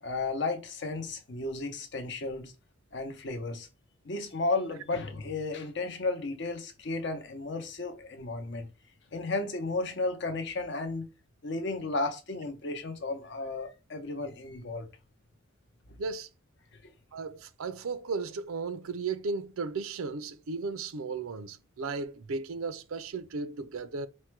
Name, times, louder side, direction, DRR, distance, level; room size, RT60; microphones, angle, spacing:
voice 1, 0.0-2.5 2.9-3.7 4.0-8.7 9.1-11.1 11.4-14.9 15.9-16.0 16.8-16.9, left 3 dB, 55° left, 0.7 m, -33 dB
voice 2, 16.0-16.3 17.1-24.1, right 4 dB, 85° right, 0.5 m, -35 dB
4.3 x 2.1 x 4.5 m
head